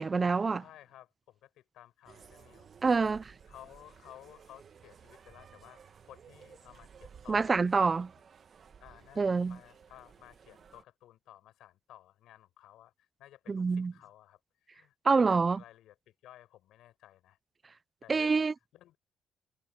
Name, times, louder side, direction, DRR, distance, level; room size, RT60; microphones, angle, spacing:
voice 1, 0.0-0.6 2.8-3.2 7.3-8.1 9.2-9.6 13.5-13.9 15.0-15.6 18.1-18.5, right 4 dB, 30° right, 0.5 m, -26 dB
voice 2, 0.6-3.1 3.5-7.6 8.8-17.4 18.0-18.5 18.7-19.0, left 13 dB, 85° left, 6.8 m, -56 dB
sound 1, 2.0-10.8, right 7 dB, 50° right, 1.5 m, -56 dB
cardioid pair, 90°, 0 cm